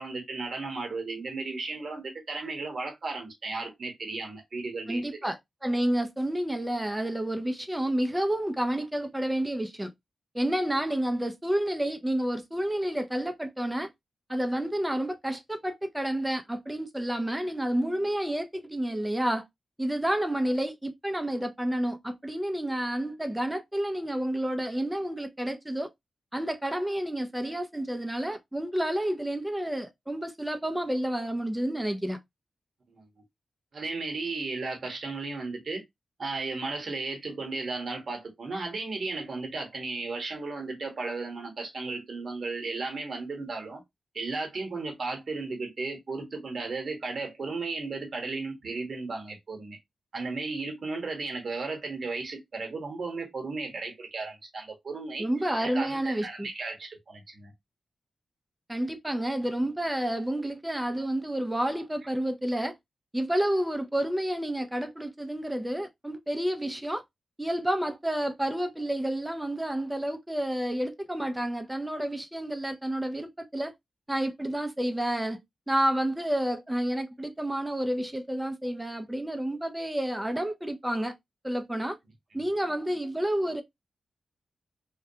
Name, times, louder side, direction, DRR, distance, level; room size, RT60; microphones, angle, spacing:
voice 1, 0.0-5.1 32.9-33.1 33.7-35.8 36.2-43.8 44.1-49.8 50.1-55.3 55.6-57.5, right 3 dB, 55° right, 1.0 m, -35 dB
voice 2, 4.9-9.9 10.3-13.9 14.3-19.4 19.8-25.9 26.3-32.2 55.2-56.5 58.7-62.7 63.1-67.0 67.4-73.7 74.1-75.4 75.7-81.1 81.4-82.0 82.3-83.6, right 1 dB, 10° right, 0.5 m, -30 dB
2.2 x 2.2 x 2.6 m
wide cardioid pair, 95°, 0 cm